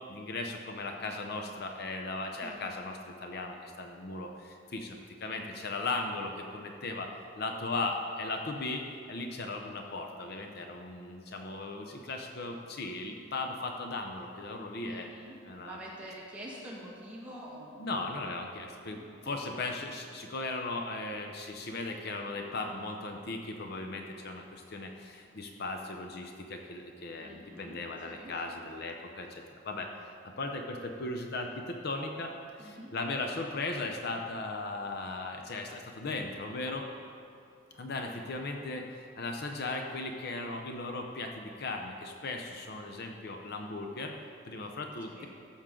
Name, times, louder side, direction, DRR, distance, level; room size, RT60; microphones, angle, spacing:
voice 1, 0.1-15.1 15.5-15.8 17.8-29.9 30.2-36.8 37.7-44.1 44.5-45.3, left 2 dB, 55° left, 3 dB, 0.7 m, -37 dB
voice 2, 14.8-17.9 19.0-19.6 27.2-27.8 28.1-28.3 32.6-32.9 45.1-45.3, equal, 10° right, -6 dB, 2.0 m, -46 dB
15.0 x 7.2 x 3.8 m, 2.5 s
head